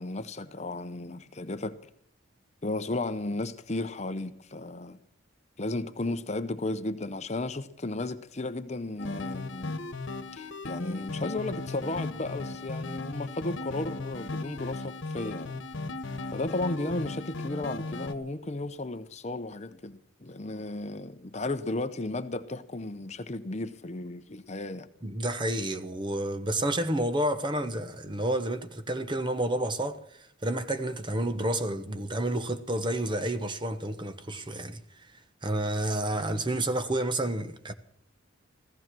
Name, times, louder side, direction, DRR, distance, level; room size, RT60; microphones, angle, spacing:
voice 1, 0.0-1.8 2.6-5.0 5.6-9.8 10.3-15.5 16.3-24.9, left 2 dB, 35° left, 0.7 m, -34 dB
sound 1, 9.0-18.1, left 2 dB, 70° left, 1.3 m, -37 dB
voice 2, 25.0-35.1 35.4-37.7, right 1 dB, 25° right, 1.0 m, -30 dB
15.5 x 15.0 x 6.1 m
head